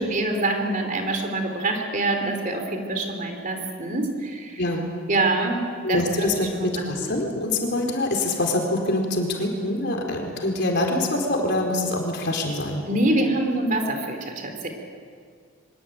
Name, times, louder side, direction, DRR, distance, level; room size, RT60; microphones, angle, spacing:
voice 1, 0.0-4.6 5.1-5.6 5.9-6.7 7.0-7.1 12.8-14.7, right 2 dB, 40° right, 4 dB, 3.3 m, -25 dB
voice 2, 4.6-4.9 5.8-12.8, left 1 dB, 55° left, 1 dB, 4.5 m, -25 dB
24.0 x 21.5 x 9.1 m, 2.1 s
head